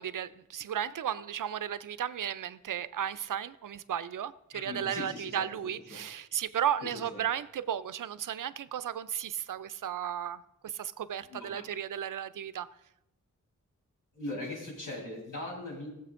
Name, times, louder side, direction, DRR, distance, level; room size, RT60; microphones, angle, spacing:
voice 1, 0.0-12.7, right 9 dB, 80° right, 0.5 m, -34 dB
voice 2, 4.5-5.3 7.1-7.2 11.3-11.6 14.1-15.9, left 2 dB, 90° left, 4.1 m, -39 dB
20.0 x 7.5 x 2.5 m
wide cardioid pair, 100°, 31 cm